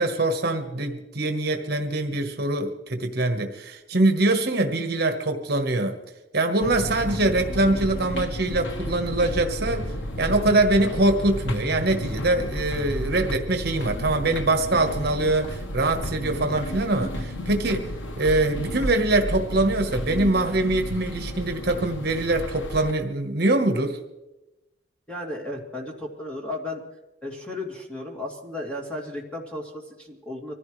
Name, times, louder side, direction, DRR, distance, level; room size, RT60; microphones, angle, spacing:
voice 1, 0.0-6.0 6.3-17.9 18.2-24.0, right 2 dB, 60° right, 5 dB, 1.3 m, -23 dB
sound 1, 6.6-22.9, equal, 80° left, 1.2 m, -32 dB
voice 2, 25.1-26.8 27.2-30.5, left 1 dB, 5° left, -1 dB, 2.6 m, -34 dB
24.5 x 15.0 x 3.3 m, 1.0 s
head